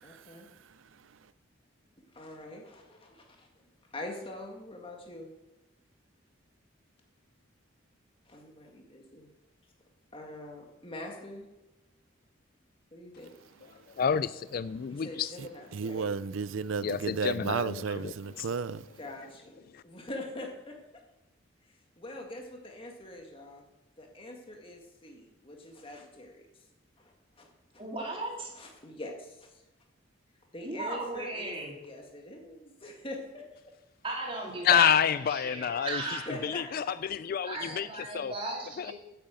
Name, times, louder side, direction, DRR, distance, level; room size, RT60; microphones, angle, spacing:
voice 1, 0.0-0.5 2.1-3.5 3.9-5.3 8.3-9.3 10.1-11.5 12.9-13.3 14.9-16.1 19.0-20.8 21.6-23.6 24.0-26.5 27.0-27.5 28.5-29.6 30.5-31.5 31.8-33.4 36.0-37.0, left 1 dB, 30° left, 1.8 m, -44 dB
voice 2, 14.0-15.3 16.8-18.5 19.7-19.8 34.6-36.0 36.4-37.9 38.1-38.3 38.8-38.9, left 8 dB, 50° left, 0.3 m, -28 dB
voice 3, 15.4-18.9, right 5 dB, 80° right, 0.5 m, -33 dB
voice 4, 27.8-28.5 30.6-31.7 34.0-36.3 37.4-38.9, right 2 dB, 30° right, 3.0 m, -36 dB
9.1 x 8.8 x 7.7 m
head